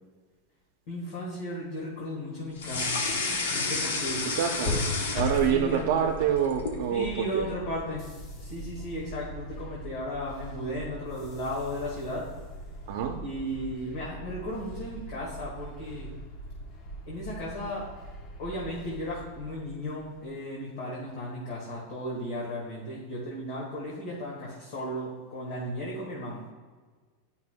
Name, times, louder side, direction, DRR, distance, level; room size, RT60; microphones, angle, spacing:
voice 1, 0.9-3.1 3.5-4.2 5.5-6.1 6.9-8.1 8.4-12.3 13.2-16.1 17.1-17.9 18.4-26.4, equal, 60° left, -4 dB, 1.8 m, -35 dB
sound 1, 2.6-5.8 6.1-6.8, left 3 dB, 85° left, 1.1 m, -30 dB
voice 2, 4.4-4.7 5.1-7.5 12.9-13.2, right 8 dB, 70° right, 2 dB, 0.6 m, -26 dB
sound 2, 4.6-20.3, equal, 40° left, 0.9 m, -39 dB
9.5 x 5.5 x 2.2 m, 1.4 s
supercardioid pair, 140°, 0 cm